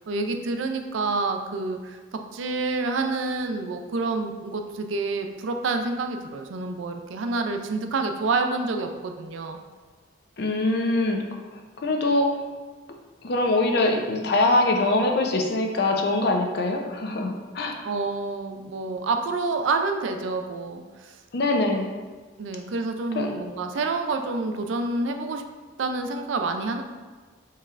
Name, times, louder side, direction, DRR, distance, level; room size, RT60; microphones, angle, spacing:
voice 1, 0.0-9.6 17.8-21.1 22.4-25.4 25.8-26.8, right 3 dB, 75° right, 6 dB, 0.4 m, -28 dB
voice 2, 10.4-11.3 11.8-12.3 13.2-17.8 21.3-21.9 23.2-23.4, left 2 dB, 55° left, 3 dB, 0.5 m, -23 dB
5.5 x 3.1 x 2.4 m, 1.4 s
head